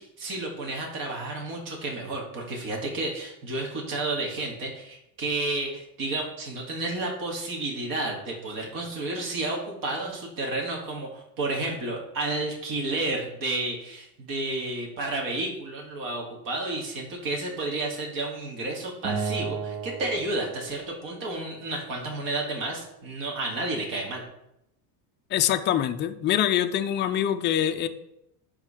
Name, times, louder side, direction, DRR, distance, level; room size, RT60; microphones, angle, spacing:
voice 1, 0.0-24.2, right 2 dB, 45° right, -1 dB, 2.2 m, -31 dB
Acoustic guitar, 19.0-22.3, right 5 dB, 75° right, 1.1 m, -35 dB
voice 2, 25.3-27.9, left 10 dB, 25° left, 8 dB, 0.4 m, -24 dB
11.0 x 3.8 x 4.9 m, 0.82 s
cardioid pair, 140°, 46 cm